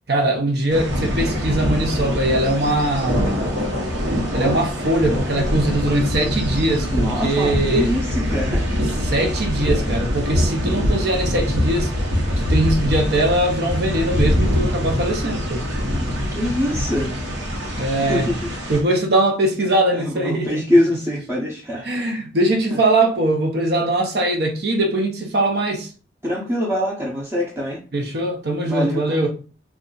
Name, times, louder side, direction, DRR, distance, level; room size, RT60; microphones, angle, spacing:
voice 1, 0.1-3.3 4.3-7.9 9.0-11.9 12.4-15.7 17.8-18.3 18.7-20.8 21.8-25.9 27.9-29.3, right 1 dB, 65° right, 0.6 m, -21 dB
sound 1, 0.7-18.8, equal, 90° right, 1.0 m, -23 dB
voice 2, 6.9-8.8 15.9-17.1 18.0-18.5 19.9-21.9 26.2-27.8 28.6-29.3, left 1 dB, 15° right, 0.6 m, -23 dB
2.5 x 2.3 x 3.7 m
head